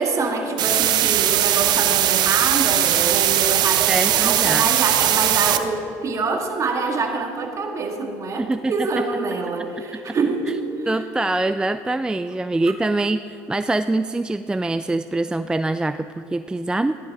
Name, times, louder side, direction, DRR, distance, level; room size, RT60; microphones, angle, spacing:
voice 1, 0.0-10.9, right 4 dB, 40° right, 3 dB, 1.8 m, -25 dB
sound 1, 0.6-5.6, right 12 dB, 60° right, 0.7 m, -19 dB
voice 2, 3.9-4.7 8.4-8.9 10.1-10.2 10.5-10.6 10.9-16.9, right 2 dB, 10° right, 11 dB, 0.3 m, -24 dB
15.5 x 11.5 x 3.9 m, 2.7 s
supercardioid pair, 80°, 8 cm